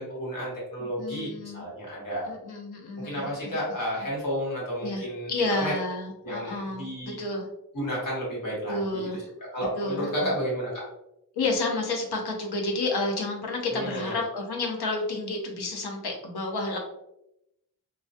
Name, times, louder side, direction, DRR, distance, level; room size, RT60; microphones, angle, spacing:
voice 1, 0.0-2.3 3.0-5.7 6.2-7.2 7.7-9.1 9.5-10.8 13.7-14.2, equal, 60° left, -6 dB, 1.2 m, -32 dB
voice 2, 0.8-1.6 2.3-3.6 4.8-7.5 8.7-9.2 9.7-10.3 11.4-16.8, left 2 dB, 85° left, 1 dB, 0.7 m, -30 dB
2.2 x 2.1 x 2.6 m, 0.84 s
wide cardioid pair, 125°, 37 cm